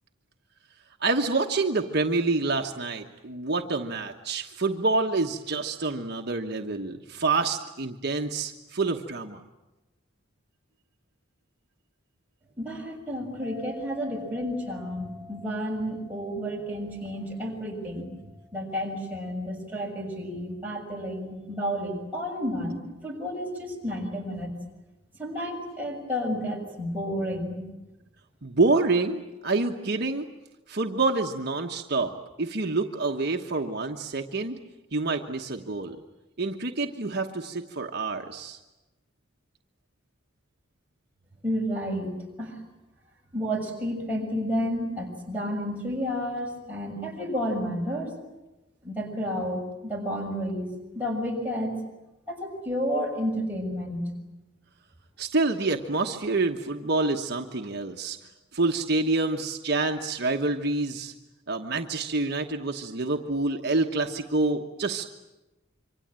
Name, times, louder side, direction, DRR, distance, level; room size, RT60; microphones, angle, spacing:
voice 1, 1.0-9.4 28.4-30.3 30.7-34.6 34.9-36.0 36.4-38.6 55.2-58.2 58.5-61.1 61.5-65.1, right 3 dB, 55° right, 3 dB, 1.3 m, -27 dB
voice 2, 12.6-18.1 18.5-24.5 25.2-27.6 41.4-42.6 43.3-48.1 48.8-51.8 52.3-54.0, equal, 10° right, -2 dB, 6.6 m, -31 dB
sound 1, 13.4-20.5, left 2 dB, 65° left, 7.8 m, -49 dB
26.5 x 25.0 x 8.9 m, 1.0 s
head